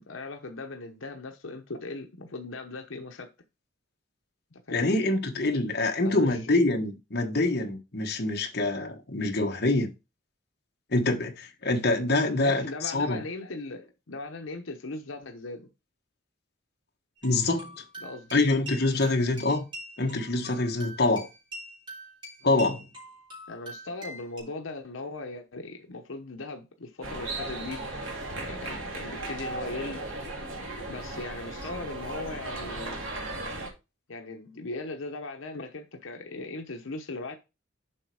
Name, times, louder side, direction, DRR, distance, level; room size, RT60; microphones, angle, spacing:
voice 1, 0.0-3.3 4.5-5.0 6.0-6.5 12.3-15.7 18.0-18.6 23.5-28.1 28.4-30.0 30.9-33.0 34.1-37.4, left 2 dB, 80° left, 0.9 m, -39 dB
voice 2, 4.7-9.9 10.9-13.2 17.2-17.8 18.3-19.6 20.0-21.3 22.4-22.8, left 2 dB, 50° left, 1.3 m, -25 dB
sound 1, 17.2-24.4, right 1 dB, 25° right, 3.5 m, -44 dB
sound 2, 27.0-33.7, right 2 dB, 80° right, 2.4 m, -36 dB
7.5 x 5.0 x 4.8 m
head